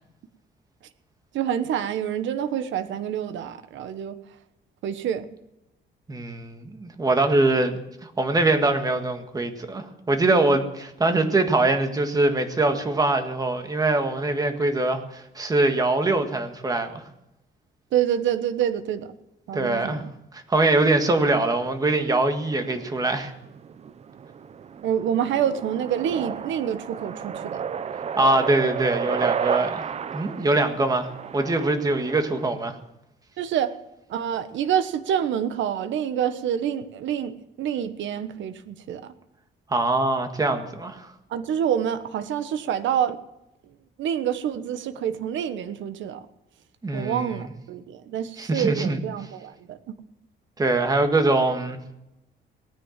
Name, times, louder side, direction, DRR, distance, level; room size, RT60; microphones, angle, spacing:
voice 1, 1.3-4.1 4.8-5.3 17.9-19.1 19.5-20.1 24.8-27.6 33.4-33.8 34.1-39.1 41.3-43.2 44.0-46.2 46.9-49.8, right 9 dB, 80° right, 10 dB, 1.2 m, -27 dB
voice 2, 6.1-17.0 19.5-20.0 20.3-23.3 28.2-32.8 39.7-41.1 46.8-47.4 48.4-49.0 50.6-51.8, right 2 dB, 20° right, 6 dB, 1.7 m, -23 dB
sound 1, 21.5-32.5, right 7 dB, 35° right, 0.6 m, -33 dB
18.0 x 10.0 x 7.4 m, 0.87 s
cardioid pair, 175°, 19 cm